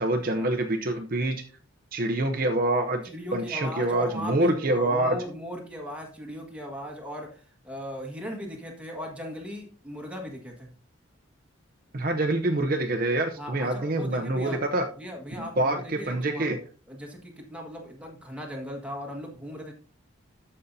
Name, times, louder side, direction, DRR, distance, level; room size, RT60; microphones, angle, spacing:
voice 1, 0.0-1.4 1.9-3.0 3.3-5.2 11.9-14.8 15.4-16.6, right 1 dB, 45° right, 5 dB, 0.7 m, -26 dB
voice 2, 3.0-10.7 13.4-14.6 15.0-16.5 16.9-19.7, equal, 5° right, 0 dB, 1.6 m, -38 dB
13.5 x 5.5 x 2.7 m, 0.42 s
head